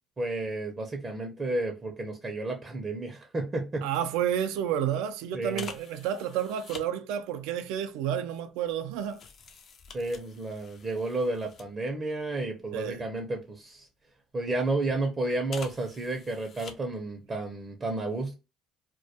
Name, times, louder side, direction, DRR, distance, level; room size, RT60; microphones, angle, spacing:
voice 1, 0.2-3.9 5.3-5.7 9.9-13.9 14.3-18.3, right 2 dB, 35° right, 0.5 m, -32 dB
voice 2, 3.8-9.2 12.7-13.0, right 9 dB, 85° right, 0.3 m, -30 dB
sound 1, 3.9-4.1 4.4-4.6 5.5-6.9 7.7-12.2 12.6-13.9 14.5-14.9 15.4-17.1 17.4-17.5, left 5 dB, 55° left, 0.4 m, -47 dB
2.1 x 2.1 x 2.7 m
supercardioid pair, 75°, 0 cm